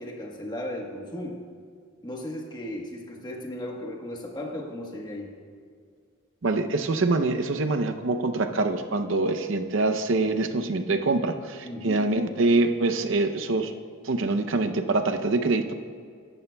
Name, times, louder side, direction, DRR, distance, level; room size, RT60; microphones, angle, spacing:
voice 1, 0.0-1.4 2.0-5.4 11.6-12.1, left 1 dB, 20° left, 0 dB, 1.2 m, -36 dB
voice 2, 6.4-13.7 14.0-15.7, right 3 dB, 65° right, 7 dB, 0.6 m, -25 dB
14.5 x 11.0 x 2.3 m, 2.1 s
head